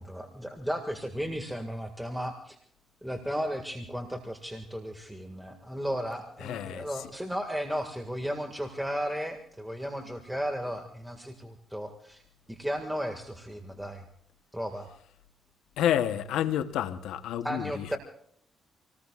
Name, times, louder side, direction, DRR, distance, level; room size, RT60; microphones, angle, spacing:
voice 1, 0.0-2.6 3.0-12.2 12.5-14.1 14.5-14.9 17.4-18.0, equal, 5° right, 1.8 m, -34 dB
voice 2, 6.4-7.1 15.8-18.0, left 10 dB, 85° left, 0.9 m, -30 dB
27.5 x 19.0 x 2.4 m
cardioid pair, 90°, 0 cm